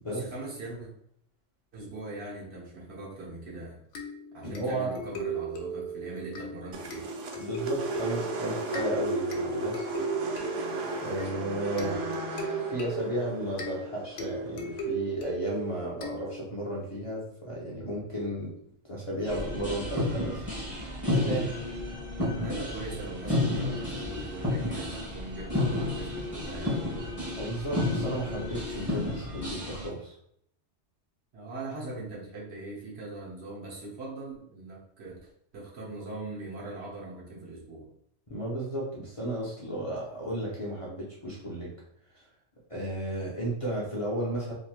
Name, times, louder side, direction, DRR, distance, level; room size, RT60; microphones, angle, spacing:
voice 1, 0.1-0.9 1.7-3.8 4.3-7.1 11.8-12.3 22.4-26.8 31.3-37.9, right 2 dB, 65° right, -4 dB, 1.1 m, -41 dB
sound 1, 3.9-16.7, right 4 dB, 85° left, 0.9 m, -37 dB
voice 2, 4.4-5.0 7.4-9.9 11.0-11.9 12.6-18.5 18.9-20.5 21.1-21.5 27.3-30.1 38.3-41.7 42.7-44.5, right 1 dB, 35° left, -6 dB, 0.6 m, -33 dB
sound 2, 6.7-15.0, right 2 dB, 90° right, 0.9 m, -35 dB
sound 3, 19.2-29.9, left 2 dB, 10° left, 1.2 m, -31 dB
3.0 x 2.7 x 2.3 m, 0.69 s
omnidirectional pair, 1.2 m